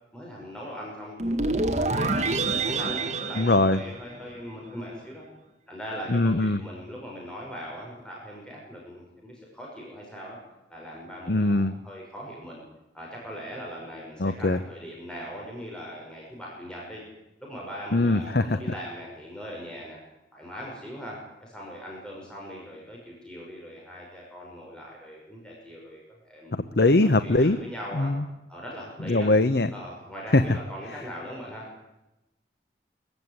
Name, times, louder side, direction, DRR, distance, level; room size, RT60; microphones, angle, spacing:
voice 1, 0.1-2.2 2.7-5.3 5.7-10.4 10.7-12.6 12.9-17.0 17.4-20.0 20.3-28.1 28.5-29.3 29.7-31.7, equal, 5° left, -3 dB, 5.9 m, -40 dB
sound 1, 1.2-4.5, right 3 dB, 40° right, 2.1 m, -27 dB
voice 2, 3.4-3.8 6.1-6.6 11.3-11.8 14.2-14.6 17.9-18.6 26.8-27.6 28.0-28.2 29.1-29.7 30.3-30.4, left 2 dB, 65° left, 11 dB, 0.9 m, -21 dB
23.5 x 15.0 x 9.8 m, 0.95 s
head